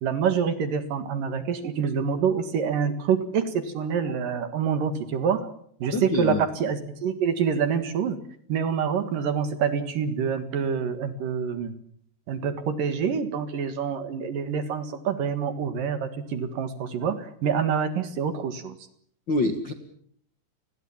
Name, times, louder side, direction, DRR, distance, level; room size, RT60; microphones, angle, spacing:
voice 1, 0.0-5.5 5.8-8.2 8.5-11.7 12.3-18.8, right 7 dB, 60° right, 10 dB, 3.0 m, -26 dB
voice 2, 5.9-6.4 19.3-19.7, left 2 dB, 45° left, 6 dB, 1.6 m, -26 dB
30.0 x 21.0 x 7.2 m, 0.65 s
omnidirectional pair, 5.0 m